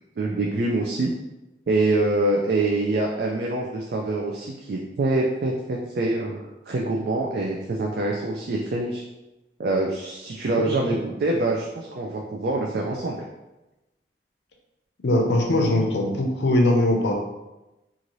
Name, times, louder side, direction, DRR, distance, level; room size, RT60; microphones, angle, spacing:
voice 1, 0.2-1.1 1.7-9.0 9.6-13.2, right 2 dB, 60° right, -1 dB, 0.3 m, -25 dB
voice 2, 15.0-17.1, left 1 dB, 75° left, 1 dB, 0.5 m, -21 dB
2.6 x 2.5 x 3.0 m, 1.0 s
head